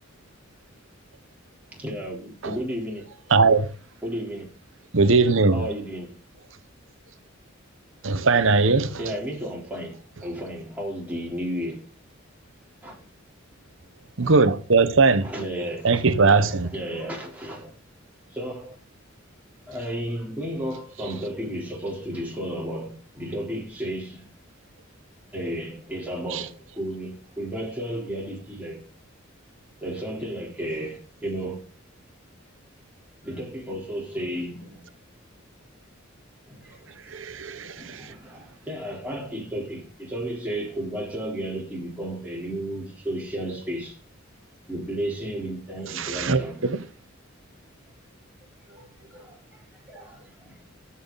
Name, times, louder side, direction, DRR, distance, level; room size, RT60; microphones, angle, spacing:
voice 1, 1.7-3.1 4.0-4.5 5.5-6.2 9.0-11.8 12.8-13.0 15.2-16.0 16.4-17.7 18.3-18.7 19.7-24.3 25.3-28.9 29.8-31.7 33.2-34.8 36.5-44.0 44.7-46.7 48.7-50.7, right 1 dB, 10° right, 3.7 m, -33 dB
voice 2, 3.3-3.7 4.9-5.7 8.0-9.0 14.2-15.3 15.8-16.7 26.3-26.4 37.1-38.0 46.0-46.8, right 4 dB, 70° right, 1.0 m, -20 dB
14.0 x 5.8 x 4.0 m
head